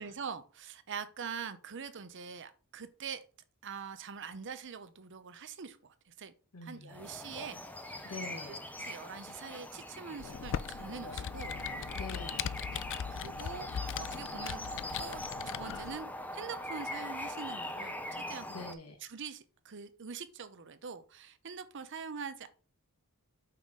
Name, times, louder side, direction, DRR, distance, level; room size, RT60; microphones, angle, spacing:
voice 1, 0.0-3.2 3.6-6.3 6.6-8.1 8.5-11.6 12.7-12.8 13.1-14.6 15.0-16.1 16.3-18.5 19.0-22.5, right 6 dB, 55° right, 0.7 m, -44 dB
voice 2, 6.5-7.0 8.0-8.6 11.9-12.5 18.5-19.0, left 3 dB, 85° left, 1.2 m, -45 dB
sound 1, 6.9-18.7, left 1 dB, 5° left, 0.5 m, -42 dB
Computer keyboard, 10.2-16.0, left 8 dB, 55° left, 0.3 m, -39 dB
5.7 x 4.1 x 4.7 m
head